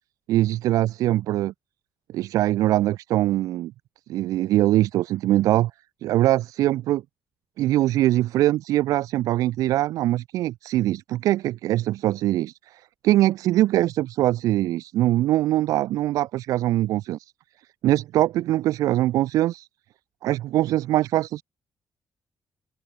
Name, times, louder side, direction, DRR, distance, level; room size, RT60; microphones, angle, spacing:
voice 1, 0.3-1.5 2.1-3.7 4.1-5.7 6.0-7.0 7.6-17.2 17.8-19.7 20.2-21.4, right 14 dB, 75° right, 0.9 m, -22 dB
open air
hypercardioid pair, 50°, 6 cm